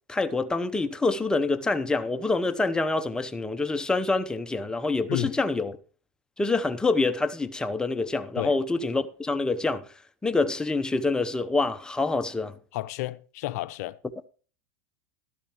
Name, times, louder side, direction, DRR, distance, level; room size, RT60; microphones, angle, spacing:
voice 1, 0.1-5.8 6.4-9.9 10.2-12.5, left 3 dB, 10° left, 0.8 m, -26 dB
voice 2, 12.7-14.0, left 17 dB, 70° left, 0.6 m, -31 dB
12.5 x 12.5 x 3.1 m
supercardioid pair, 120°, 9 cm